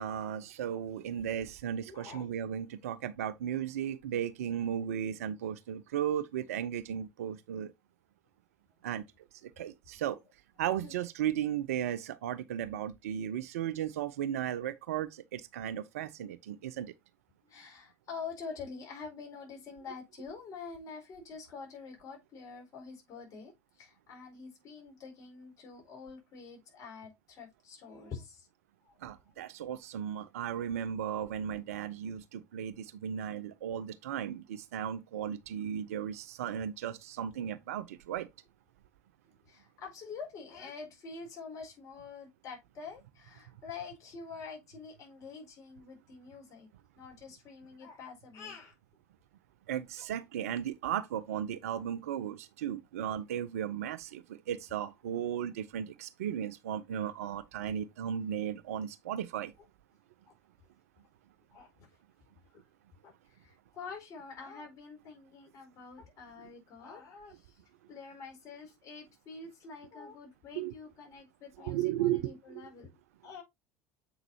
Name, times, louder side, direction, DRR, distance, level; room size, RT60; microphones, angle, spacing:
voice 1, 0.0-7.7 8.8-9.0 9.4-10.2 10.6-16.9 29.0-38.3 49.7-59.5 66.4-66.5 70.6-70.7 71.6-72.6, right 10 dB, 65° right, 0.5 m, -35 dB
voice 2, 1.9-2.3 8.8-8.9 10.8-11.0 17.5-23.5 23.8-28.5 28.8-29.0 29.3-29.4 39.4-46.7 47.0-48.7 50.0-50.1 61.5-61.9 62.5-62.6 63.0-67.6 67.9-72.9 73.2-73.4, left 5 dB, 40° left, 4.5 m, -46 dB
7.6 x 5.9 x 2.8 m
figure-of-eight pair, 70°, 9 cm